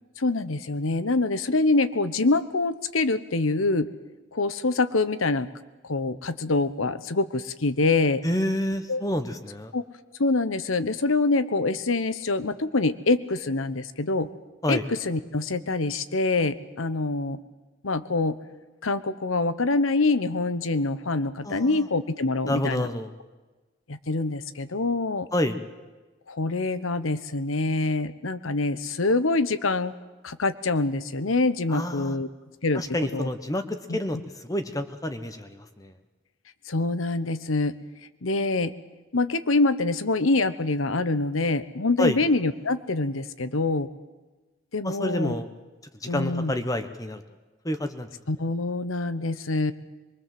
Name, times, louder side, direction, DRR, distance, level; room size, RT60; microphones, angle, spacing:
voice 1, 0.2-3.9 4.3-5.5 5.8-8.2 8.9-9.0 9.7-9.8 10.2-14.3 14.7-14.8 15.0-17.4 17.8-18.4 18.8-22.9 23.9-25.3 26.3-29.9 30.2-32.3 32.6-32.8 33.1-33.3 33.9-34.0 36.7-37.7 38.2-38.7 39.1-43.9 44.7-45.3 46.1-46.5 48.3-49.7, left 3 dB, 85° left, 13 dB, 1.1 m, -25 dB
voice 2, 8.2-9.7 14.6-14.9 21.4-21.9 22.5-23.1 25.3-25.6 31.7-32.2 32.7-35.9 42.0-42.2 44.8-45.5 46.0-47.2 47.6-48.1, left 1 dB, 15° left, 8 dB, 1.1 m, -28 dB
23.5 x 23.0 x 7.8 m, 1.2 s
head